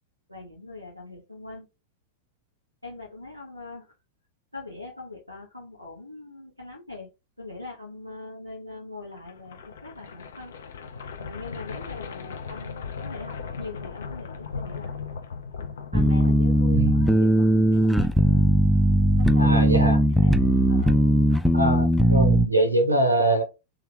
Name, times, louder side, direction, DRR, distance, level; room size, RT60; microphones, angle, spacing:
voice 1, 0.3-1.7 2.8-3.9 4.5-7.1 7.4-10.5 10.8-10.9 11.2-15.0 15.9-18.1 19.2-19.5 20.2-20.4 20.7-21.1, left 3 dB, 90° left, 0.8 m, -41 dB
sound 1, 9.1-17.1, left 5 dB, 65° left, 0.4 m, -38 dB
sound 2, 15.9-22.5, equal, ahead, 0.3 m, -19 dB
voice 2, 16.7-17.1 19.4-20.0 21.5-23.4, right 2 dB, 90° right, 0.7 m, -23 dB
3.3 x 2.4 x 3.3 m
figure-of-eight pair, 90°, 0 cm